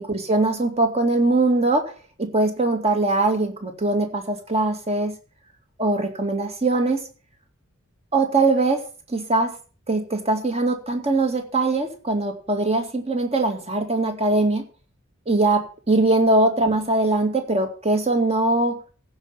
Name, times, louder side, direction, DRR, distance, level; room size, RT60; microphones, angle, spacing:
voice 1, 0.0-1.8 2.2-5.1 5.8-7.0 8.1-8.8 9.1-9.5 9.9-14.6 15.3-18.8, right 2 dB, 30° right, 5 dB, 2.3 m, -21 dB
15.0 x 5.6 x 7.2 m, 0.38 s
head